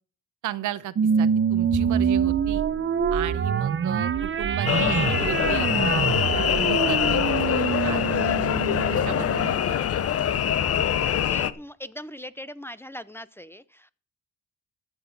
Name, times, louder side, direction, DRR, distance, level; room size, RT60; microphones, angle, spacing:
voice 1, 0.4-2.6 3.1-5.7 5.9-8.4 8.9-9.8, right 12 dB, 80° right, 15 dB, 0.9 m, -35 dB
sound 1, 0.9-9.7, right 7 dB, 40° right, 0.9 m, -25 dB
Bowed string instrument, 1.7-8.0, left 5 dB, 90° left, 2.3 m, -42 dB
sound 2, 4.7-11.5, left 9 dB, 50° left, 0.8 m, -24 dB
voice 2, 10.5-13.9, left 1 dB, 10° left, 16 dB, 0.6 m, -41 dB
14.0 x 7.8 x 5.3 m, 0.43 s
cardioid pair, 90°, 30 cm